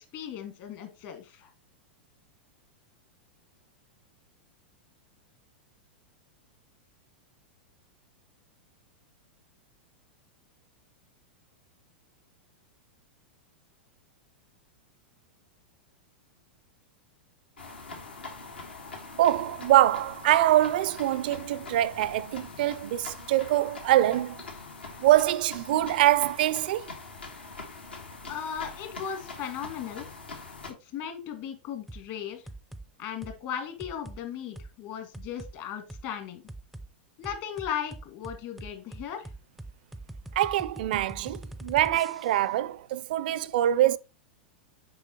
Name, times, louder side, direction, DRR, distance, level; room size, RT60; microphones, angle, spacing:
voice 1, 0.0-1.5 28.3-30.1 30.8-32.4 33.0-36.4 37.2-39.3, left 9 dB, 50° left, 1.8 m, -37 dB
sound 1, 17.6-30.7, left 3 dB, 85° left, 1.6 m, -43 dB
voice 2, 19.2-24.4 25.0-26.9 40.4-44.0, right 14 dB, 60° right, 0.4 m, -24 dB
sound 2, 31.9-32.1 32.5-32.9 33.2-33.4 33.8-34.2 34.6-34.7 35.1-35.5 35.9-36.0 36.5-36.9 37.2-42.5, right 1 dB, ahead, 0.4 m, -43 dB
6.9 x 5.4 x 2.9 m
hypercardioid pair, 100°, 6 cm